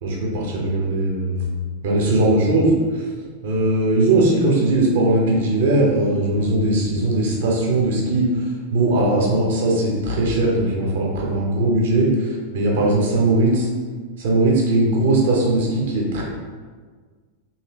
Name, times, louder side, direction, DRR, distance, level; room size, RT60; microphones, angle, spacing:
voice 1, 0.0-1.5 1.8-3.0 3.4-8.3 8.7-12.3 12.5-13.7 14.2-16.2, right 2 dB, 55° right, -2 dB, 0.9 m, -19 dB
4.1 x 3.1 x 3.0 m, 1.5 s
figure-of-eight pair, 90°, 0 cm